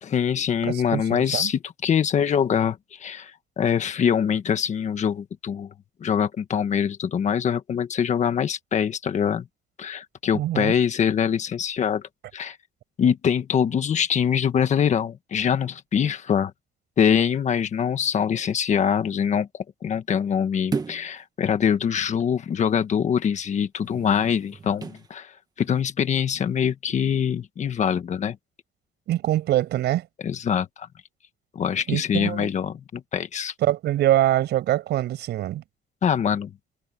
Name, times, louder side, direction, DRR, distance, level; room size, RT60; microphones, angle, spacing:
voice 1, 0.0-5.7 6.0-9.5 9.8-12.0 12.3-12.6 13.0-16.5 17.0-28.4 30.2-30.9 31.5-33.5 36.0-36.5, left 8 dB, 45° left, 1.4 m, -24 dB
voice 2, 0.6-1.5 10.3-10.7 29.1-30.1 31.9-32.5 33.6-35.6, right 13 dB, 90° right, 6.6 m, -24 dB
sound 1, 20.7-21.2 23.8-25.1 25.6-25.8, right 4 dB, 20° right, 1.5 m, -33 dB
cardioid pair, 155°, 17 cm